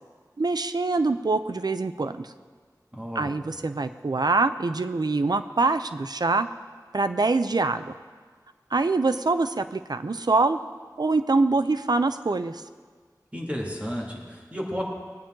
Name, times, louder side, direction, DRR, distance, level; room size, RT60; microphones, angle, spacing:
voice 1, 0.4-2.3 3.2-6.5 6.9-7.9 8.7-10.6 11.0-12.6, right 3 dB, 70° right, 10 dB, 0.5 m, -24 dB
voice 2, 2.9-3.3 13.3-14.8, equal, 20° right, -2 dB, 2.5 m, -32 dB
19.5 x 8.7 x 3.8 m, 1.5 s
wide cardioid pair, 50°, 7 cm